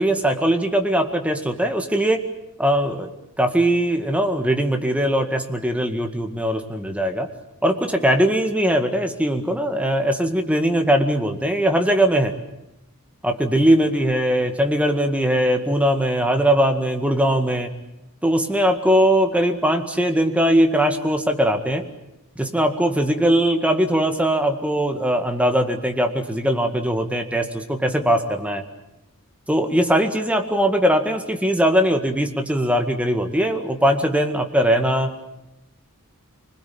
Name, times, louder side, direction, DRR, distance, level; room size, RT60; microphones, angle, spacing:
voice 1, 0.0-2.2 2.6-3.1 3.4-7.3 7.6-12.4 13.2-17.7 18.2-21.9 22.4-28.6 29.5-35.2, right 1 dB, 5° right, 5 dB, 1.9 m, -20 dB
25.5 x 21.0 x 8.7 m, 0.89 s
head